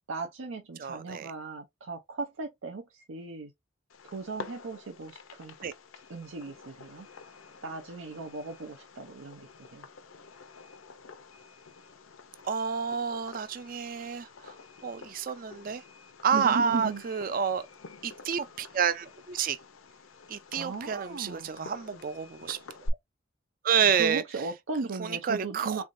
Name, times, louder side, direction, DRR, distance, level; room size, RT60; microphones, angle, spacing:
voice 1, 0.1-3.5 4.0-5.5 6.1-7.1 7.6-9.9 16.3-17.0 20.5-21.7 24.0-25.8, right 4 dB, 80° right, 0.6 m, -37 dB
voice 2, 0.8-1.3 5.6-5.7 12.5-14.3 14.8-15.8 16.2-17.7 18.0-19.6 20.3-22.6 23.6-24.2 25.0-25.8, right 7 dB, 45° right, 0.4 m, -29 dB
Fireworks, 3.9-22.9, left 3 dB, 85° left, 0.7 m, -47 dB
3.7 x 3.4 x 2.6 m
head